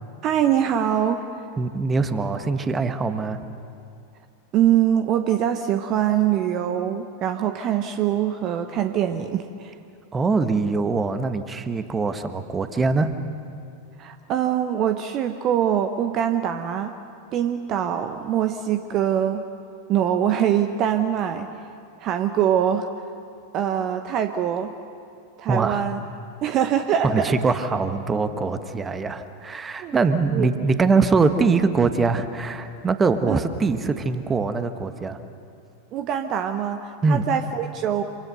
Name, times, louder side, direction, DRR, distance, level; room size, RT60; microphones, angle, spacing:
voice 1, 0.2-1.2 4.5-9.7 14.0-16.9 17.3-19.4 19.9-21.5 22.0-22.9 23.5-24.7 25.4-26.0 26.4-27.3 29.8-29.9 30.3-30.5 33.3-33.4 35.9-38.0, right 10 dB, 35° right, 8 dB, 1.0 m, -23 dB
voice 2, 1.6-3.4 10.1-13.1 25.5-25.8 27.0-35.2 37.0-37.2, right 4 dB, 15° right, 9 dB, 1.4 m, -23 dB
27.0 x 25.5 x 6.8 m, 2.5 s
figure-of-eight pair, 90°, 0 cm